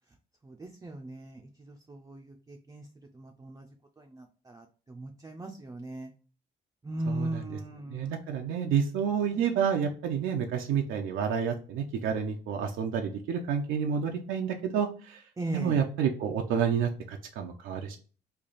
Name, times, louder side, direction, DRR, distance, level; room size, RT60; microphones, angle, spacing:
voice 1, 0.4-2.9 3.1-3.7 4.0-6.1 6.8-8.1 9.3-9.6 15.4-15.8, right 1 dB, 15° right, 2 dB, 0.4 m, -39 dB
voice 2, 7.1-7.4 7.9-15.2 15.5-18.0, right 7 dB, 90° right, 2 dB, 0.5 m, -29 dB
3.3 x 2.4 x 3.8 m, 0.39 s
cardioid pair, 90°, 20 cm